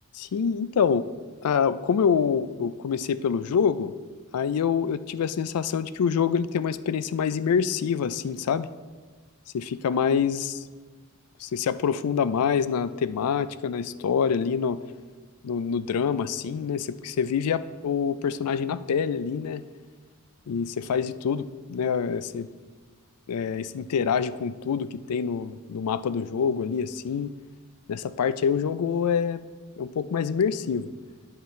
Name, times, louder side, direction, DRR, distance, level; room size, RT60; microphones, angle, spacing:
voice 1, 0.2-1.1 1.4-3.9 4.3-8.7 9.5-10.5 11.4-14.8 15.4-19.6 20.5-22.5 23.3-27.3 27.9-29.4 29.8-30.9, left 6 dB, 85° left, 15 dB, 0.4 m, -26 dB
9.6 x 5.7 x 4.3 m, 1.4 s
head